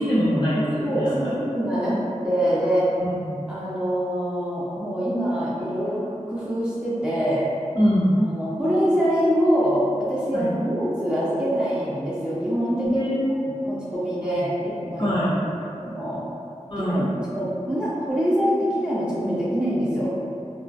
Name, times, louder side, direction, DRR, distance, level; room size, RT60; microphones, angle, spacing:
voice 1, 0.0-1.3 3.0-3.4 7.7-8.1 10.3-10.5 12.8-13.4 14.3-14.4 15.0-15.3 16.7-17.0, equal, 40° left, -10 dB, 0.8 m, -23 dB
voice 2, 0.8-2.9 3.5-6.0 6.3-7.5 8.3-13.1 13.6-15.1 15.8-16.2 16.8-20.1, equal, 5° right, -9 dB, 0.4 m, -24 dB
2.4 x 2.3 x 2.2 m, 2.6 s
wide cardioid pair, 55°, 13 cm